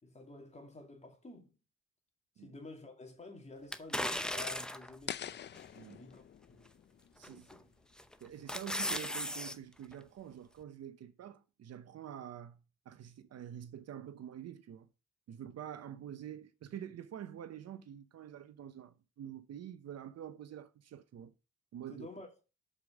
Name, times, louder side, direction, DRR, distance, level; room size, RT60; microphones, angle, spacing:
voice 1, 0.0-1.5 2.4-5.4 5.8-6.2 6.5-6.7 7.2-7.7 21.9-22.4, left 2 dB, 20° left, 2.5 m, -51 dB
sound 1, 3.7-5.0 5.6-5.7 7.2-7.6 8.0-9.6 9.9-10.0, left 1 dB, 5° left, 0.7 m, -36 dB
sound 2, 5.1-8.1, left 10 dB, 40° left, 0.4 m, -46 dB
voice 2, 7.2-7.5 8.2-12.6 12.9-14.9 15.3-21.3 21.7-22.1, right 10 dB, 55° right, 0.7 m, -47 dB
6.7 x 4.9 x 6.2 m
cardioid pair, 90°, 30 cm